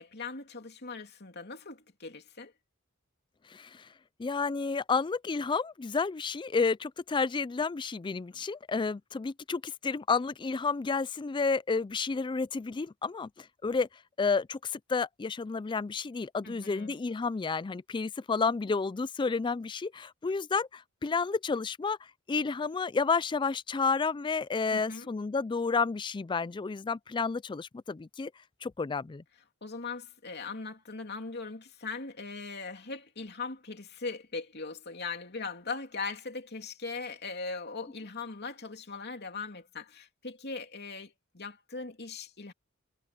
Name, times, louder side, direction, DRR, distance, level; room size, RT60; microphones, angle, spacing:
voice 1, 0.0-2.5 16.4-17.0 24.7-25.1 29.6-42.5, left 4 dB, 50° left, 2.9 m, -40 dB
voice 2, 3.5-3.9 4.2-13.9 14.2-22.0 22.3-28.3 28.6-29.2, left 4 dB, 20° left, 0.3 m, -31 dB
head